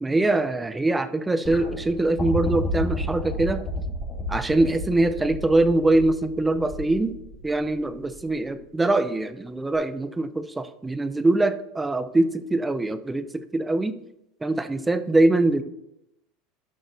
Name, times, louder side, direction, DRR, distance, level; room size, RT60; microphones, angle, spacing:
voice 1, 0.0-3.6 4.3-7.2 7.4-13.9 14.4-15.6, right 2 dB, 15° right, 11 dB, 0.6 m, -23 dB
sound 1, 1.5-8.6 9.7-9.8, left 2 dB, 20° left, 3.0 m, -32 dB
13.0 x 6.0 x 2.7 m, 0.84 s
hypercardioid pair, 90°, 0 cm